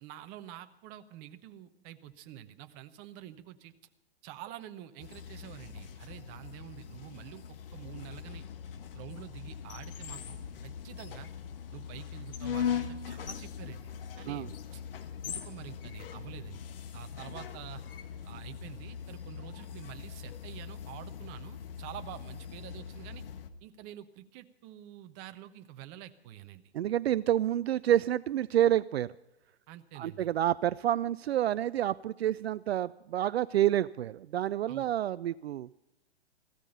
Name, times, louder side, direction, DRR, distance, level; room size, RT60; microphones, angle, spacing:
voice 1, 0.0-3.7 4.2-7.5 7.7-8.4 8.9-11.3 11.7-13.8 14.2-14.8 15.2-16.7 16.9-17.8 18.2-23.2 23.6-26.7 29.7-30.3 34.7-34.9, right 12 dB, 30° right, 9 dB, 1.0 m, -47 dB
sound 1, 5.0-23.5, left 8 dB, 55° left, 1.4 m, -41 dB
voice 2, 26.7-29.1 30.0-35.7, right 11 dB, 70° right, 17 dB, 0.5 m, -28 dB
15.5 x 13.5 x 5.5 m, 0.93 s
hypercardioid pair, 125°, 32 cm